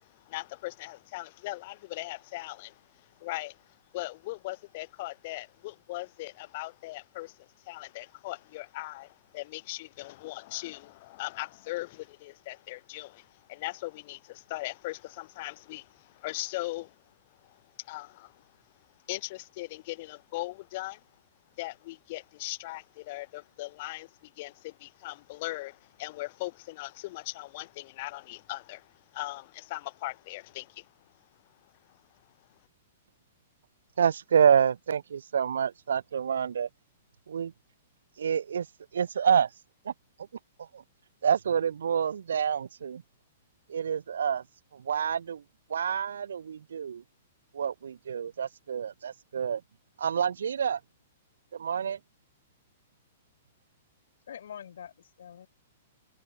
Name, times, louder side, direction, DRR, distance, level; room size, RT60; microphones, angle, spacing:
voice 1, 0.0-17.0 17.3-18.5 19.1-21.1 21.6-30.9 31.9-32.0, left 20 dB, 45° left, 0.3 m, -39 dB
voice 2, 34.0-36.7 37.3-37.5 38.2-38.7 38.9-39.5 39.8-39.9 40.6-40.8 41.2-43.0 43.7-44.4 44.7-45.4 45.7-47.0 47.5-49.6 50.0-50.8 51.5-52.0, right 7 dB, 90° right, 0.6 m, -27 dB
voice 3, 54.3-55.5, left 9 dB, 80° left, 1.1 m, -44 dB
hypercardioid pair, 155°, 0 cm